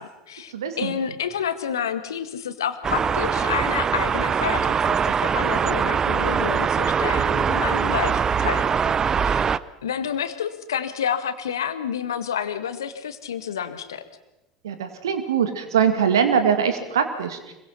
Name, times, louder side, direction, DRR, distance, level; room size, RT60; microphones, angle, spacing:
voice 1, 0.0-9.4 9.8-14.0, left 8 dB, 75° left, 11 dB, 1.7 m, -29 dB
voice 2, 0.5-0.9 14.6-17.5, right 7 dB, 75° right, 9 dB, 2.2 m, -22 dB
sound 1, 2.8-9.6, right 7 dB, 30° right, 0.7 m, -22 dB
25.5 x 23.0 x 5.7 m, 0.98 s
figure-of-eight pair, 75°, 2 cm